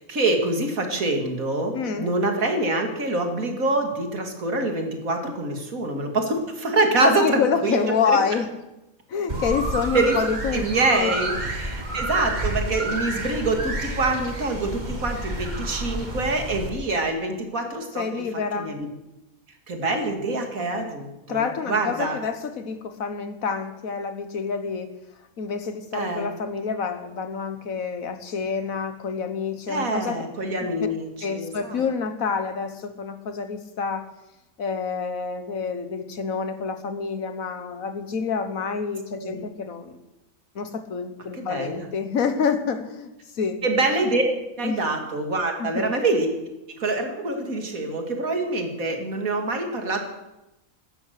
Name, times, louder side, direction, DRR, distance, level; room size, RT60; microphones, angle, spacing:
voice 1, 0.0-8.2 9.9-10.2 10.5-18.0 18.5-18.9 19.7-22.2 25.9-26.3 29.7-31.8 39.2-39.5 41.3-41.9 43.6-44.2 44.6-46.3 46.7-50.0, right 2 dB, 80° right, 4 dB, 2.8 m, -25 dB
voice 2, 1.7-2.1 7.0-8.5 9.1-10.7 10.9-11.1 18.0-18.7 21.3-24.9 25.4-30.2 31.2-34.1 34.6-40.0 40.6-43.6 44.6-44.9 45.6-45.9, left 6 dB, 80° left, 9 dB, 1.7 m, -27 dB
sound 1, 9.3-16.7, right 1 dB, 35° right, 2.1 m, -30 dB
16.0 x 12.5 x 6.7 m, 0.97 s
omnidirectional pair, 1.4 m